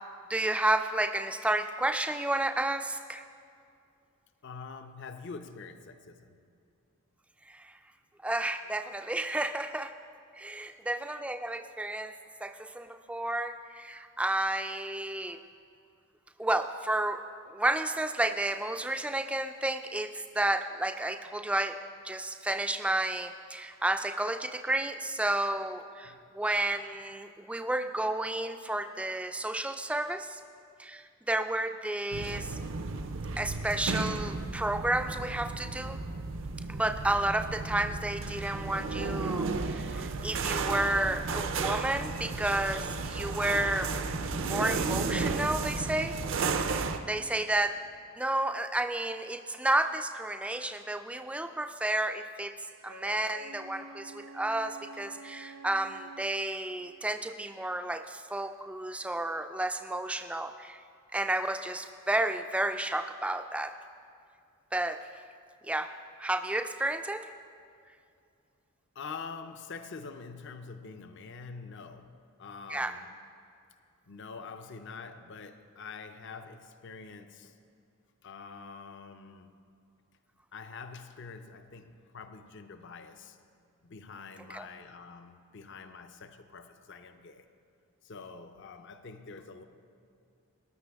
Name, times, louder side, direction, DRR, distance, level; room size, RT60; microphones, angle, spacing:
voice 1, 0.3-3.2 7.5-7.8 8.2-9.9 10.3-12.1 12.4-15.4 16.4-17.2 17.5-21.8 22.0-30.4 30.8-32.6 33.4-36.0 36.7-43.9 44.4-46.2 46.6-46.8 47.1-47.7 48.2-60.8 61.1-63.7 64.7-65.0 65.6-65.9 66.2-67.3 72.7-72.9 84.5-84.7, right 1 dB, 5° right, 0.3 m, -31 dB
voice 2, 4.4-6.4 10.5-10.8 26.0-26.3 68.9-72.1 72.4-73.1 74.1-77.6 78.2-79.6 80.5-83.4 83.8-87.5 88.0-89.7, left 4 dB, 55° left, 0.6 m, -45 dB
sound 1, 32.1-47.0, right 4 dB, 55° right, 0.5 m, -33 dB
Wind instrument woodwind instrument, 52.8-56.3, right 2 dB, 80° right, 1.5 m, -48 dB
19.0 x 9.6 x 3.5 m
head